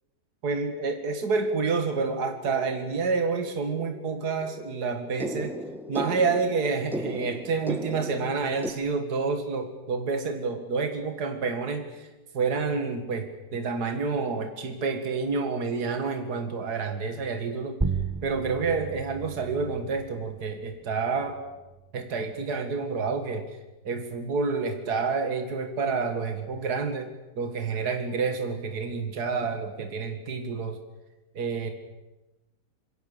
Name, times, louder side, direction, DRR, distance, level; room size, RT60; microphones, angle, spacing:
voice 1, 0.4-5.6 5.9-12.1 12.3-17.8 18.2-21.4 21.9-23.5 23.8-27.1 27.4-30.8 31.4-31.7, right 4 dB, 65° right, 6 dB, 2.4 m, -29 dB
sound 1, 2.2-8.7, right 1 dB, ahead, 1.4 m, -37 dB
sound 2, 17.8-22.9, right 4 dB, 25° right, 0.3 m, -35 dB
26.5 x 22.5 x 6.9 m, 1.0 s
omnidirectional pair, 1.9 m